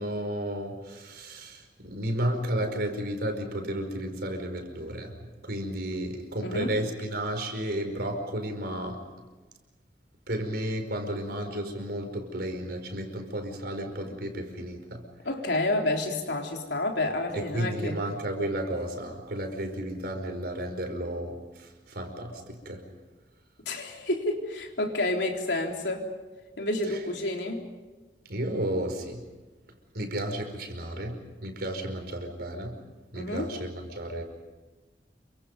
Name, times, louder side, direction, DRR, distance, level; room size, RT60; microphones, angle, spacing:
voice 1, 0.0-5.2 5.4-9.0 10.3-15.0 17.3-22.9 28.2-29.2 29.9-32.8 33.1-34.2, right 1 dB, 65° right, 5 dB, 5.0 m, -33 dB
voice 2, 6.4-6.7 15.2-18.0 23.7-26.1 26.6-27.7 33.1-33.5, left 2 dB, 75° left, 1 dB, 3.8 m, -29 dB
28.0 x 25.0 x 5.4 m, 1.2 s
head